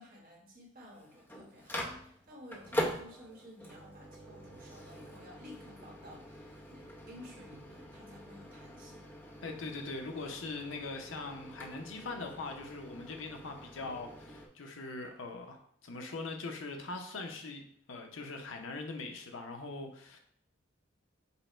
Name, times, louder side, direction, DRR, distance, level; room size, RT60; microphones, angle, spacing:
voice 1, 0.0-9.1, left 1 dB, 45° right, -2 dB, 1.2 m, -53 dB
Microwave oven, 0.8-14.5, equal, 10° left, 0.6 m, -43 dB
voice 2, 9.4-17.6 17.9-20.2, left 3 dB, 75° left, 4 dB, 0.7 m, -41 dB
5.5 x 2.1 x 4.3 m, 0.62 s
head